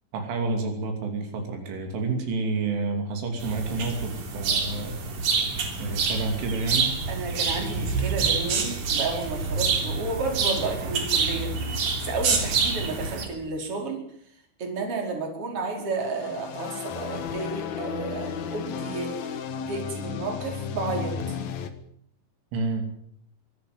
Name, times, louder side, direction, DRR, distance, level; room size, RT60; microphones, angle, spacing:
voice 1, 0.1-5.0 5.8-7.0 22.5-22.9, right 3 dB, 75° right, 5 dB, 5.2 m, -29 dB
sound 1, 3.4-13.3, right 5 dB, 50° right, 4.5 m, -27 dB
voice 2, 7.1-14.0 14.6-21.4, right 3 dB, 30° right, 2 dB, 5.4 m, -32 dB
sound 2, 16.0-21.7, left 7 dB, 75° left, 1.6 m, -34 dB
25.0 x 13.0 x 9.4 m, 0.67 s
omnidirectional pair, 5.7 m